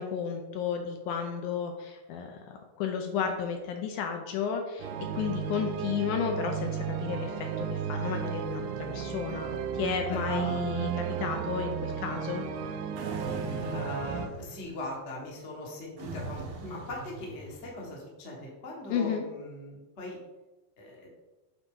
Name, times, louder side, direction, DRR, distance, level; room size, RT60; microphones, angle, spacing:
voice 1, 0.0-4.9 5.1-9.5 9.8-12.4 18.9-19.3, left 7 dB, 80° left, 4 dB, 1.9 m, -33 dB
sound 1, 4.8-14.3, right 8 dB, 90° right, 2.3 m, -34 dB
voice 2, 10.1-10.6 13.6-20.2 20.8-21.1, left 1 dB, 50° left, -3 dB, 0.8 m, -40 dB
sound 2, 13.0-14.8 16.0-17.8, right 3 dB, 70° right, 1.7 m, -40 dB
8.8 x 4.0 x 3.8 m, 1.1 s
omnidirectional pair, 4.0 m